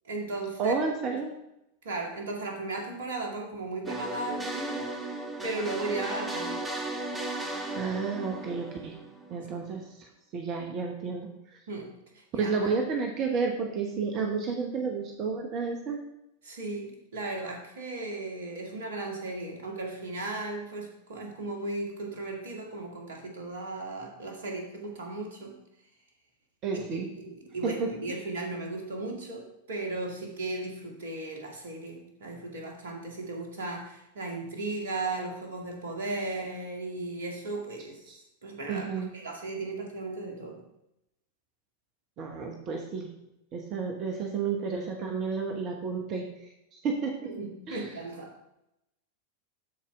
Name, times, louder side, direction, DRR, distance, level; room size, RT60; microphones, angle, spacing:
voice 1, 0.0-0.7 1.1-1.2 1.8-5.1 5.4-6.7 11.7-12.7 16.4-25.6 26.9-38.1 38.4-40.6 47.2-48.3, right 2 dB, 60° right, 1 dB, 1.9 m, -36 dB
voice 2, 0.6-1.3 7.8-8.9 9.3-9.8 10.3-11.3 12.4-16.0 26.6-27.1 27.6-27.9 38.1-38.2 38.7-39.1 42.2-43.1 43.5-46.2 46.7-47.1 47.7-47.8, right 5 dB, 35° right, 3 dB, 1.1 m, -31 dB
sound 1, 3.9-9.6, right 2 dB, 10° right, 1.3 m, -36 dB
12.5 x 4.4 x 3.7 m, 0.85 s
figure-of-eight pair, 90°, 0 cm